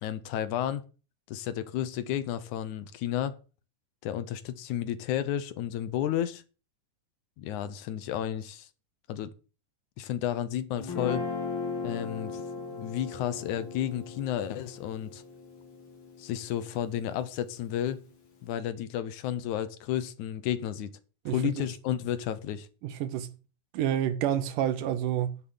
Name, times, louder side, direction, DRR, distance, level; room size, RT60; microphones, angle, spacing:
voice 1, 0.0-0.8 1.3-3.3 4.0-6.4 7.4-8.7 9.1-9.3 10.0-11.3 11.8-12.4 12.7-15.2 16.2-18.0 18.4-21.0 21.3-22.7, left 11 dB, 75° left, 2.2 m, -32 dB
Guitar, 10.8-17.1, left 4 dB, 40° left, 2.8 m, -38 dB
voice 2, 21.3-21.7 22.8-23.3 23.7-25.4, right 10 dB, 85° right, 2.7 m, -29 dB
10.0 x 6.9 x 7.0 m
omnidirectional pair, 3.6 m